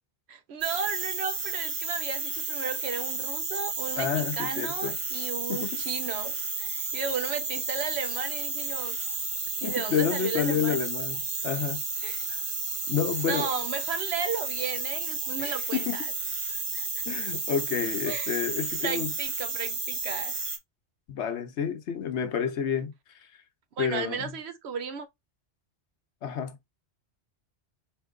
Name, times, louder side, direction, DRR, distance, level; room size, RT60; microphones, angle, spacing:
voice 1, 0.3-9.0 9.6-10.8 12.0-12.2 13.3-16.0 16.5-16.9 18.1-18.4 18.8-20.4 23.8-25.1, right 6 dB, 70° right, 0.9 m, -34 dB
sound 1, 0.6-20.6, right 3 dB, 30° right, 0.9 m, -32 dB
voice 2, 4.0-5.0 5.5-5.8 9.6-11.8 12.3-12.4 12.9-13.5 15.4-16.0 17.1-19.1 21.1-23.3 23.8-24.4 26.2-26.6, left 8 dB, 80° left, 1.1 m, -30 dB
4.4 x 2.7 x 3.6 m
omnidirectional pair, 1.1 m